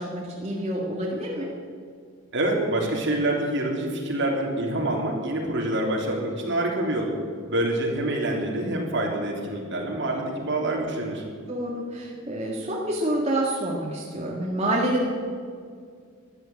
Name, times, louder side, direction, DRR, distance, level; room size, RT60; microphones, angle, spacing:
voice 1, 0.0-1.5 11.5-15.1, right 1 dB, 30° right, -3 dB, 1.9 m, -27 dB
voice 2, 2.3-7.1 7.4-11.2, right 1 dB, 55° right, -1 dB, 3.4 m, -26 dB
13.5 x 11.5 x 8.5 m, 2.1 s
head